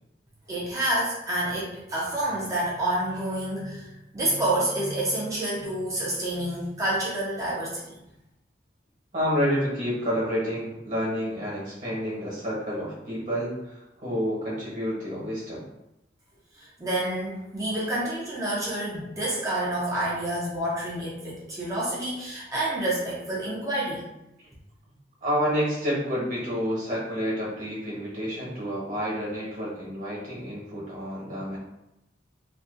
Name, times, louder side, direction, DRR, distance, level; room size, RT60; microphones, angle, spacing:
voice 1, 0.5-8.0 16.6-24.0, right 1 dB, 20° right, -6 dB, 0.4 m, -28 dB
voice 2, 9.1-15.6 24.4-24.5 25.2-31.6, equal, 45° right, -6 dB, 1.0 m, -29 dB
2.5 x 2.2 x 2.4 m, 0.89 s
head